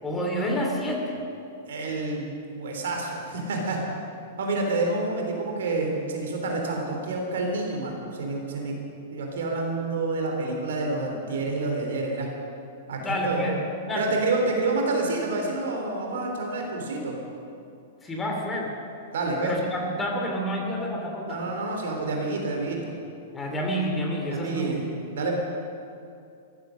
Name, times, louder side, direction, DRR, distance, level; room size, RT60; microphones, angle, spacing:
voice 1, 0.0-1.2 13.0-13.6 13.9-14.0 18.0-18.7 19.4-21.5 23.3-24.8, equal, 15° left, 0 dB, 2.8 m, -29 dB
voice 2, 1.7-3.8 4.4-8.7 9.1-12.3 12.9-13.4 13.9-17.2 19.1-19.6 21.2-22.9 24.3-25.3, right 2 dB, 60° right, 1 dB, 3.5 m, -28 dB
14.5 x 14.0 x 6.6 m, 2.5 s
figure-of-eight pair, 100°, 0 cm